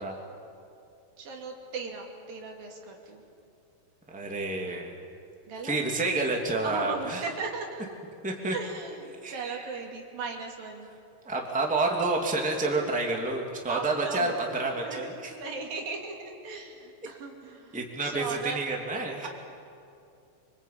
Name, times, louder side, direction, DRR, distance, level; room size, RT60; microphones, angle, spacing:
voice 1, 1.2-3.2 5.5-5.8 6.6-8.0 8.5-10.9 13.7-14.3 14.8-17.8 18.0-18.6 19.2-19.3, right 4 dB, 75° right, 1 dB, 4.4 m, -38 dB
voice 2, 4.1-4.9 5.6-7.2 8.2-8.5 9.2-9.7 11.2-15.3 17.7-19.3, right 2 dB, ahead, 0 dB, 2.3 m, -29 dB
26.5 x 24.5 x 8.7 m, 2.6 s
omnidirectional pair, 4.2 m